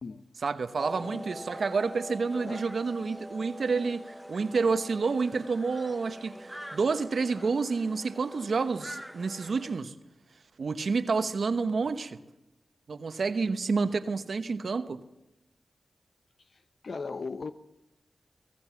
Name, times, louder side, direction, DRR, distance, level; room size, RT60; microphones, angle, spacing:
voice 1, 0.4-9.9 10.6-12.2 12.9-15.0, right 4 dB, 70° right, 1.1 m, -29 dB
sound 1, 0.8-9.8, equal, 5° right, 1.0 m, -44 dB
voice 2, 16.8-17.5, left 4 dB, 65° left, 0.8 m, -37 dB
23.5 x 17.5 x 7.2 m
cardioid pair, 40°, 0 cm